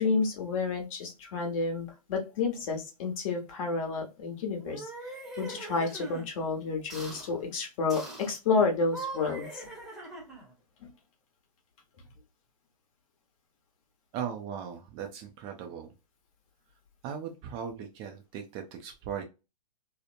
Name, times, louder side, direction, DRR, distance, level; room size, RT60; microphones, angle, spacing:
voice 1, 0.0-9.7 10.8-10.9, left 4 dB, 50° left, 2 dB, 1.1 m, -30 dB
sound 1, 4.6-6.3 6.9-7.3 7.9-8.3 8.8-10.5, right 2 dB, ahead, 0.8 m, -41 dB
voice 2, 14.1-15.9 17.0-19.2, right 8 dB, 25° right, 4 dB, 0.4 m, -38 dB
2.9 x 2.0 x 2.5 m, 0.27 s
hypercardioid pair, 130°, 21 cm